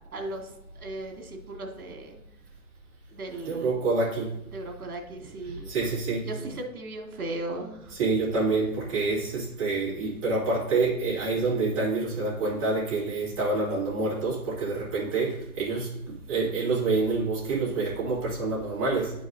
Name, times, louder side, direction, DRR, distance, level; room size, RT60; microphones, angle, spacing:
voice 1, 0.1-2.2 3.1-3.7 4.5-5.7 6.3-8.0, right 2 dB, 80° right, 2 dB, 2.0 m, -37 dB
voice 2, 3.5-4.3 5.7-6.2 8.0-15.9 16.3-19.1, right 3 dB, 25° right, -7 dB, 2.3 m, -27 dB
10.5 x 4.8 x 2.6 m, 0.86 s
hypercardioid pair, 175°, 43 cm